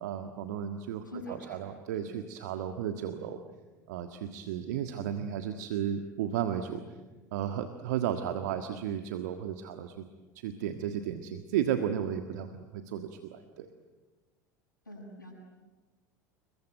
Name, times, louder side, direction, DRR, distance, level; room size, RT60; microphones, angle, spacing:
voice 1, 0.0-3.4 3.9-6.8 7.3-10.0 10.4-12.5 12.7-13.7, right 9 dB, 60° right, 7 dB, 1.6 m, -34 dB
voice 2, 1.0-2.1 14.8-15.3, equal, 90° left, -5 dB, 7.6 m, -45 dB
28.5 x 22.5 x 9.2 m, 1.3 s
figure-of-eight pair, 75°, 10 cm